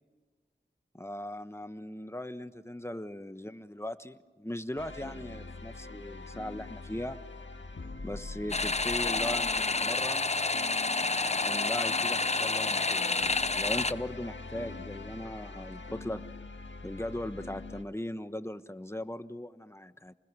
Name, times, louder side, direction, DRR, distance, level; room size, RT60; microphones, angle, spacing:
voice 1, 0.9-7.2 8.0-10.3 11.3-16.2 16.8-20.1, left 1 dB, 15° left, 11 dB, 1.1 m, -39 dB
sound 1, 4.8-17.8, left 3 dB, 80° left, 1.8 m, -43 dB
sound 2, 8.5-13.9, left 3 dB, 35° left, 0.7 m, -29 dB
29.0 x 21.0 x 6.2 m, 1.4 s
wide cardioid pair, 50°, 19 cm